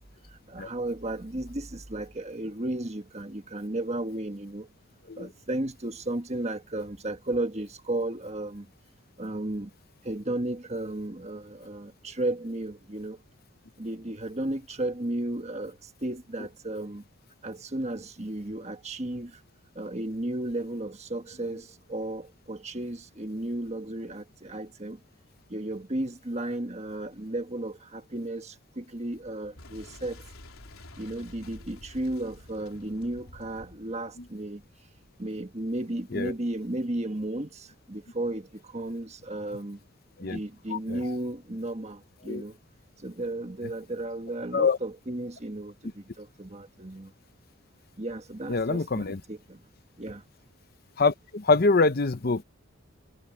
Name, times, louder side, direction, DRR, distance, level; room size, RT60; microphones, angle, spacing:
voice 1, 0.5-4.7 5.2-8.7 9.2-9.7 10.0-13.2 13.8-17.0 17.4-19.3 19.7-25.0 25.5-30.2 31.0-34.6 35.2-39.8 40.2-42.6 43.0-47.1 48.0-49.6 50.0-50.2, right 1 dB, 30° right, 1.5 m, -34 dB
Boom, 29.6-35.1, left 1 dB, 90° left, 3.8 m, -49 dB
voice 2, 48.5-49.2 51.0-52.4, left 3 dB, 45° left, 0.7 m, -25 dB
head